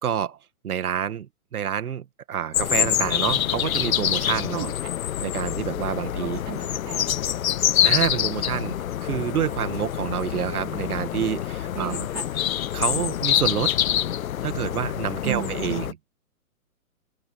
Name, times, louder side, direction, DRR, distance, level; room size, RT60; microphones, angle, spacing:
voice 1, 0.0-0.4 0.6-4.7 5.2-6.4 7.8-8.8 9.0-11.9 12.7-13.8 14.4-15.9, right 9 dB, 75° right, 2.0 m, -28 dB
sound 1, 2.5-15.9, left 11 dB, 65° left, 0.8 m, -26 dB
voice 2, 4.5-4.9 6.0-7.1 11.7-12.3 15.2-15.9, right 19 dB, 30° right, 3.4 m, -35 dB
hypercardioid pair, 165°, 45 cm